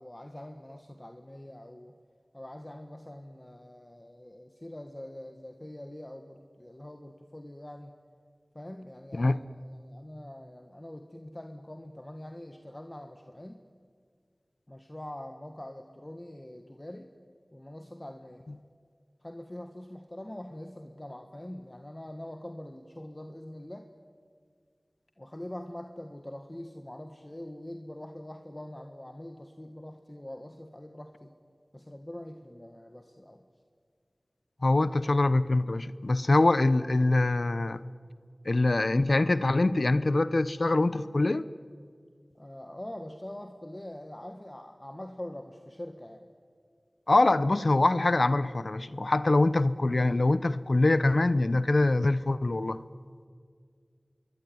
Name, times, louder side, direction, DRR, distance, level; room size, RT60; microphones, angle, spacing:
voice 1, 0.0-1.9 2.3-7.9 8.5-13.6 14.7-17.1 17.5-18.5 19.2-23.9 25.2-31.3 31.7-33.4 42.3-46.3, left 1 dB, 25° left, 5 dB, 1.6 m, -44 dB
voice 2, 34.6-37.8 38.4-41.5 47.1-52.8, left 2 dB, 65° left, 15 dB, 0.8 m, -24 dB
26.0 x 22.0 x 9.4 m, 2.1 s
wide cardioid pair, 55°, 0 cm